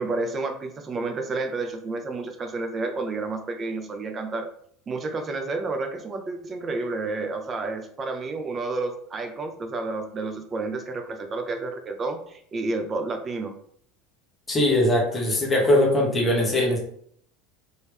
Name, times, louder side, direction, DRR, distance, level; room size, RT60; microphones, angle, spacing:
voice 1, 0.0-4.5 4.9-13.5, right 3 dB, 25° right, 6 dB, 0.6 m, -30 dB
voice 2, 14.5-16.8, left 1 dB, 15° left, -2 dB, 1.3 m, -21 dB
4.4 x 3.1 x 3.5 m, 0.64 s
supercardioid pair, 135°, 0 cm